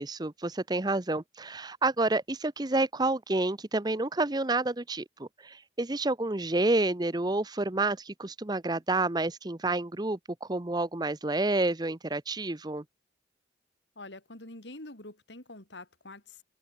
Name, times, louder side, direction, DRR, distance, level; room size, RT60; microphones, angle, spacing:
voice 1, 0.0-12.8, right 2 dB, 25° right, 0.8 m, -29 dB
voice 2, 14.0-16.4, left 2 dB, 80° left, 4.0 m, -46 dB
open air
head